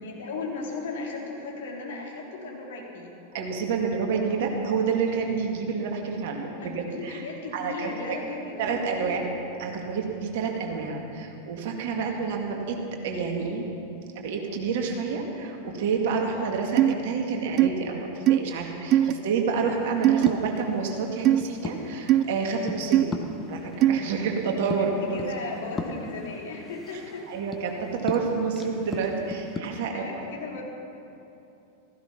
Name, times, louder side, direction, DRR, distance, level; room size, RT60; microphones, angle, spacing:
voice 1, 0.0-3.1 6.6-9.3 24.8-27.2 29.9-30.6, left 3 dB, 55° left, -2 dB, 3.3 m, -36 dB
voice 2, 3.3-7.2 7.5-7.9 8.6-9.2 9.6-12.8 13.0-13.6 14.2-23.2 23.5-25.2 27.3-30.3, right 5 dB, 50° right, 2 dB, 2.1 m, -29 dB
sound 1, 16.8-16.9 17.6-17.7 18.3-18.4 18.9-19.1 20.0-20.3 21.2-21.4 22.1-22.2 22.9-23.0 23.8-24.0, right 13 dB, 35° right, 0.4 m, -18 dB
sound 2, 19.7-29.6, left 3 dB, 15° left, 1.3 m, -38 dB
16.0 x 15.0 x 5.9 m, 2.8 s
figure-of-eight pair, 90°, 0 cm